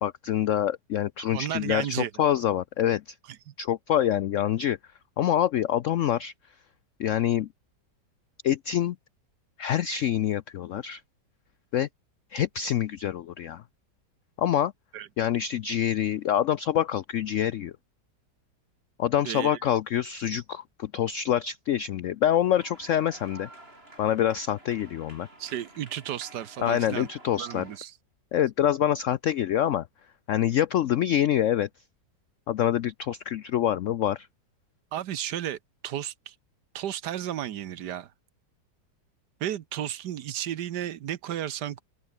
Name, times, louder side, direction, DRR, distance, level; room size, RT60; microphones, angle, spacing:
voice 1, 0.0-3.0 3.6-4.8 5.2-6.3 7.0-7.5 8.4-9.0 9.6-11.0 11.7-11.9 12.3-13.6 14.4-14.7 15.2-17.7 19.0-23.5 24.0-25.3 26.6-27.7 28.3-29.9 30.3-31.7 32.5-34.3, left 10 dB, 80° left, 0.7 m, -26 dB
voice 2, 1.3-2.1 3.5-3.6 14.9-15.1 19.2-19.6 25.4-27.1 27.3-27.9 34.9-35.6 35.8-36.3 36.7-38.1 39.4-41.8, right 11 dB, 70° right, 1.4 m, -33 dB
sound 1, 22.5-27.8, right 1 dB, 30° right, 6.3 m, -51 dB
open air
omnidirectional pair, 1.9 m